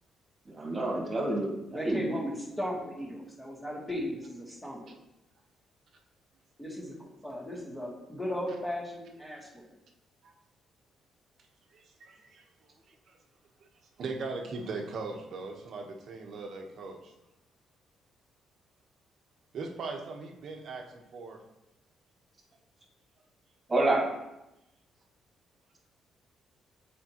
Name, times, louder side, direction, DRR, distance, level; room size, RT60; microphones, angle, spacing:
voice 1, 0.6-2.1 23.7-24.1, right 2 dB, 25° right, -1 dB, 1.9 m, -28 dB
voice 2, 1.7-4.8 6.6-9.6, equal, 10° left, -4 dB, 2.0 m, -36 dB
voice 3, 11.7-12.4 14.0-17.1 19.5-21.4, right 3 dB, 65° right, 2 dB, 1.0 m, -39 dB
7.4 x 4.3 x 2.9 m, 0.91 s
cardioid pair, 90°, 0 cm